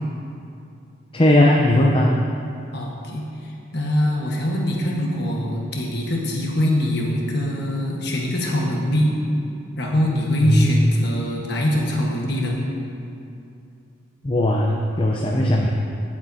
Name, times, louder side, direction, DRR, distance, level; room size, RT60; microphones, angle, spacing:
voice 1, 1.1-2.2 10.4-10.8 14.2-15.7, left 1 dB, 25° left, -1 dB, 0.6 m, -18 dB
voice 2, 2.7-9.1 9.8-12.6, equal, 55° left, -2 dB, 1.4 m, -23 dB
16.5 x 7.3 x 2.8 m, 2.6 s
head